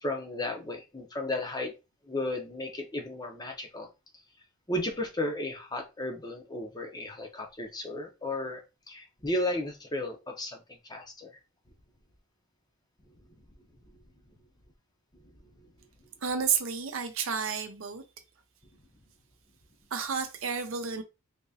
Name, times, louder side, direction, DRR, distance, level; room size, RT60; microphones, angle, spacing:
voice 1, 0.0-1.7 2.1-3.9 4.7-10.6 10.9-11.3 15.6-15.7, left 1 dB, 20° left, 0.7 m, -34 dB
voice 2, 16.2-18.0 19.9-21.0, right 6 dB, 65° right, 0.6 m, -31 dB
3.4 x 2.9 x 2.7 m
head